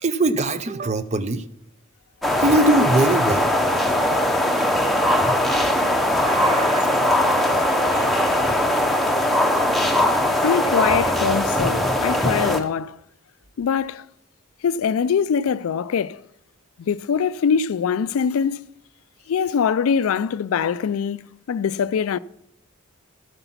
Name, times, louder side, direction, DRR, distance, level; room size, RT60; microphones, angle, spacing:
voice 1, 0.0-1.4 2.4-3.5 4.9-5.1 5.5-5.7 6.2-7.0 7.9-8.2, right 2 dB, 30° right, 0.5 m, -22 dB
sound 1, 2.2-12.6, left 1 dB, ahead, 0.8 m, -20 dB
voice 2, 10.4-13.0 13.6-14.0 14.6-16.2 16.8-18.7 19.3-22.2, left 7 dB, 80° left, 0.4 m, -23 dB
13.0 x 7.9 x 5.8 m
head